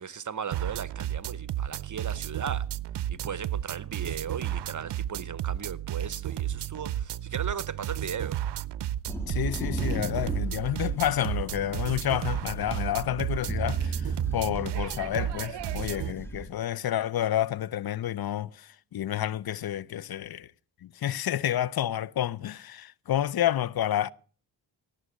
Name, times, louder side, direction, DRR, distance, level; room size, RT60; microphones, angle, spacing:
voice 1, 0.0-2.6 3.1-8.4, right 7 dB, 45° right, 0.9 m, -37 dB
sound 1, 0.5-16.1, right 12 dB, 80° right, 0.6 m, -33 dB
sound 2, 9.1-16.5, right 2 dB, 5° left, 2.9 m, -38 dB
voice 2, 9.3-20.5 20.8-24.1, left 12 dB, 60° left, 0.6 m, -29 dB
sound 3, 13.5-15.7, right 5 dB, 20° right, 0.6 m, -34 dB
18.0 x 7.6 x 6.3 m
cardioid pair, 60°, 41 cm